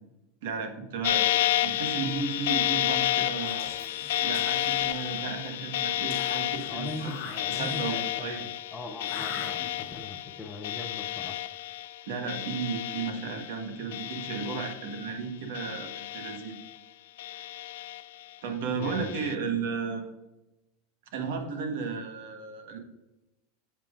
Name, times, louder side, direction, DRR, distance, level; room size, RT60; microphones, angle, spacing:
voice 1, 0.4-1.3 1.6-3.7 4.2-7.1 7.5-8.4 12.1-16.6 17.3-17.5 18.4-20.1 21.1-22.8, right 5 dB, 65° right, 5 dB, 1.3 m, -34 dB
sound 1, 1.0-13.6 13.9-15.1 15.5-16.8 17.2-18.2 18.8-19.3, left 14 dB, 75° left, 0.4 m, -31 dB
Whispering, 3.4-5.3 6.1-8.1 9.0-10.1, left 5 dB, 45° left, 2.7 m, -44 dB
voice 2, 6.7-11.4 18.7-19.1, left 2 dB, 10° left, 5 dB, 0.5 m, -40 dB
8.6 x 7.3 x 2.5 m, 1.0 s
supercardioid pair, 175°, 0 cm